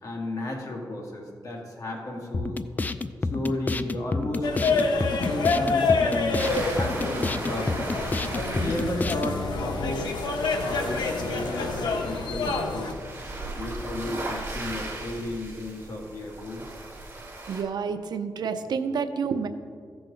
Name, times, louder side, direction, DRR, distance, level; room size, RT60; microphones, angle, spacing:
voice 1, 0.0-2.6 3.3-4.7 5.1-7.8 8.1-10.1 10.6-13.0 13.6-16.6, left 1 dB, 50° left, -1 dB, 1.9 m, -33 dB
sound 1, 2.3-9.4, left 3 dB, 25° left, 0.3 m, -30 dB
sound 2, 4.4-12.9, left 3 dB, 90° left, 0.9 m, -27 dB
sound 3, 6.4-17.6, right 2 dB, 30° right, 1.8 m, -37 dB
voice 2, 17.5-19.5, right 6 dB, 75° right, 8 dB, 0.6 m, -29 dB
14.5 x 6.0 x 3.8 m, 2.1 s
wide cardioid pair, 120°, 7 cm